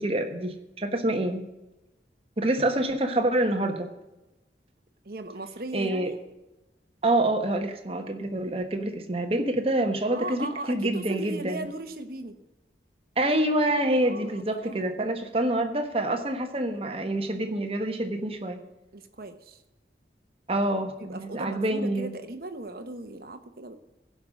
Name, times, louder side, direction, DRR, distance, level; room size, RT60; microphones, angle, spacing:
voice 1, 0.0-1.4 2.4-3.9 5.7-6.1 7.0-11.7 13.2-18.6 20.5-22.1, right 1 dB, 35° right, 6 dB, 1.3 m, -27 dB
voice 2, 5.0-6.2 10.1-12.4 14.0-14.9 18.9-19.6 21.1-23.8, right 2 dB, 55° right, 9 dB, 1.1 m, -37 dB
16.0 x 5.6 x 6.4 m, 0.99 s
head